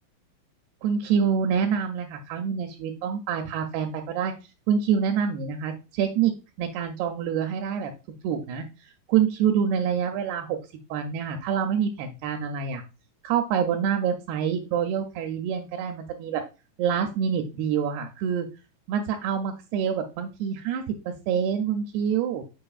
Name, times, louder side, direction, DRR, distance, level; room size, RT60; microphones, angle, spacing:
voice 1, 0.8-4.3 4.7-6.3 6.6-7.9 8.2-8.6 9.1-10.6 10.9-12.8 13.2-16.4 16.8-18.5 18.9-22.4, right 7 dB, 80° right, 4 dB, 2.5 m, -26 dB
7.7 x 5.2 x 2.4 m, 0.30 s
omnidirectional pair, 4.9 m